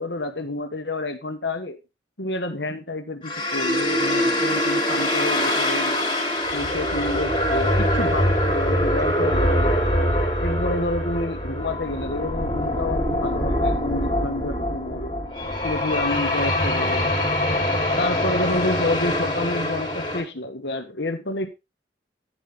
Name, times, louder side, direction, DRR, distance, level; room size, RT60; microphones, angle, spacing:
voice 1, 0.0-1.8 2.2-6.0 6.5-9.7 10.4-15.1 15.6-17.6 18.0-21.5, left 2 dB, 65° left, 7 dB, 1.5 m, -29 dB
sound 1, 3.2-20.2, left 1 dB, 25° left, 4.0 m, -23 dB
11.0 x 10.5 x 3.5 m, 0.25 s
head